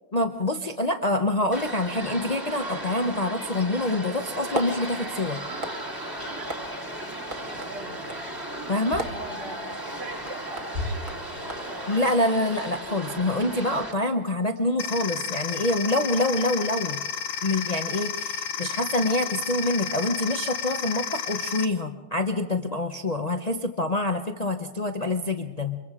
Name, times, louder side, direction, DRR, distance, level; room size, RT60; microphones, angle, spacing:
voice 1, 0.1-5.4 8.7-9.0 11.9-17.0 17.4-25.8, left 1 dB, 40° left, 5 dB, 0.5 m, -26 dB
sound 1, 1.5-13.9, right 1 dB, 10° right, 1.9 m, -35 dB
sound 2, 4.2-12.8, right 1 dB, 25° right, 1.5 m, -38 dB
voice 2, 7.7-8.0 9.0-11.8, right 2 dB, 65° right, -2 dB, 5.6 m, -42 dB
sound 3, 14.8-21.7, left 7 dB, 70° left, 1.5 m, -32 dB
24.5 x 22.5 x 4.9 m, 1.1 s
omnidirectional pair, 2.0 m